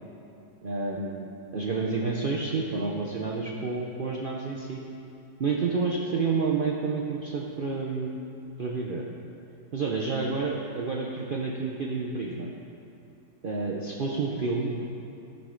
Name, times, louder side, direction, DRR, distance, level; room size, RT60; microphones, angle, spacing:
voice 1, 0.6-4.8 5.4-8.2 8.6-9.0 9.7-12.5 13.4-14.8, right 4 dB, 80° right, -2 dB, 0.4 m, -29 dB
12.5 x 7.2 x 3.8 m, 2.6 s
omnidirectional pair, 1.9 m